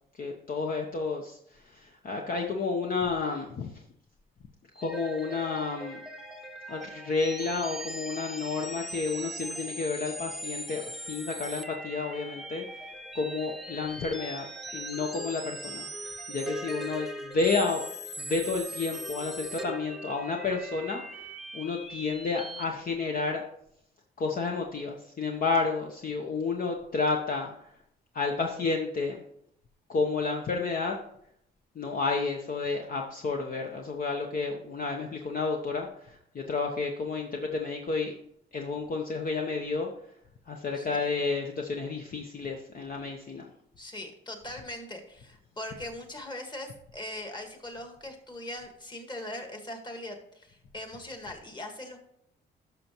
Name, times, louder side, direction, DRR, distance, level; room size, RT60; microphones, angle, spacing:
voice 1, 0.2-3.8 4.8-6.0 6.7-12.9 13.1-14.5 14.7-17.8 18.2-23.4 24.2-27.7 28.1-29.2 29.9-31.0 31.7-38.1 38.5-39.9 40.5-43.5, left 4 dB, 45° left, 1 dB, 1.0 m, -31 dB
sound 1, 4.7-22.6, right 1 dB, ahead, 0.9 m, -40 dB
voice 2, 40.7-41.1 43.8-52.0, left 1 dB, 20° left, 4 dB, 1.7 m, -41 dB
12.0 x 5.9 x 3.0 m, 0.73 s
cardioid pair, 90°, 20 cm